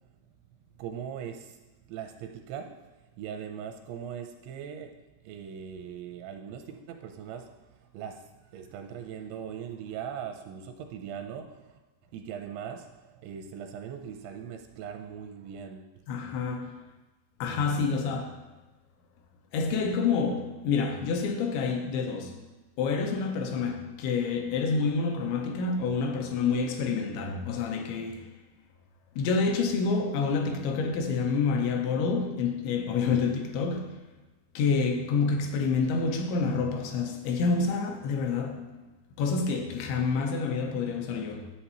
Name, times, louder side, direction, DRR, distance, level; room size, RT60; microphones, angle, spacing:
voice 1, 0.8-1.6 1.9-2.8 3.2-5.0 5.2-11.8 12.1-16.1, right 8 dB, 85° right, 2.8 m, -40 dB
voice 2, 16.1-16.7 17.4-18.4 19.5-22.4 22.8-28.3 29.2-34.0 34.5-38.7 39.2-41.5, left 4 dB, 80° left, 3.0 m, -28 dB
11.0 x 8.3 x 2.9 m
omnidirectional pair, 5.4 m